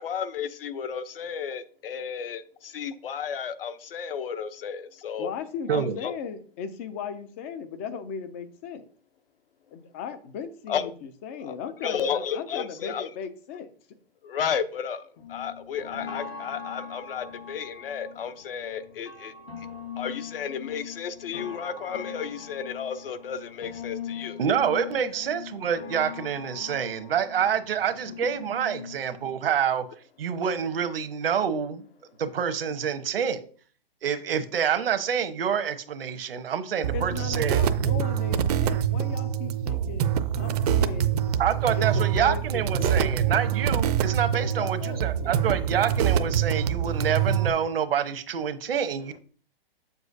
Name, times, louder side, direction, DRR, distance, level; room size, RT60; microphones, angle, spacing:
voice 1, 0.0-5.3 5.7-6.1 10.7-10.9 11.4-11.5 11.8-13.1 14.2-19.7 20.0-24.4, left 7 dB, 65° left, 9 dB, 0.8 m, -33 dB
voice 2, 5.2-8.9 9.7-13.7 36.9-40.1 40.4-41.1 41.8-43.2 44.4-45.3, left 6 dB, 15° left, 11 dB, 0.3 m, -37 dB
sound 1, 15.2-29.3, left 7 dB, 85° left, 1.8 m, -41 dB
voice 3, 24.4-29.9 30.2-31.8 32.2-33.4 34.0-37.6 41.4-49.2, right 8 dB, 70° right, 10 dB, 1.0 m, -27 dB
sound 2, 36.8-47.5, right 9 dB, 40° right, 0.6 m, -25 dB
7.6 x 7.0 x 2.7 m, 0.44 s
hypercardioid pair, 135°, 30 cm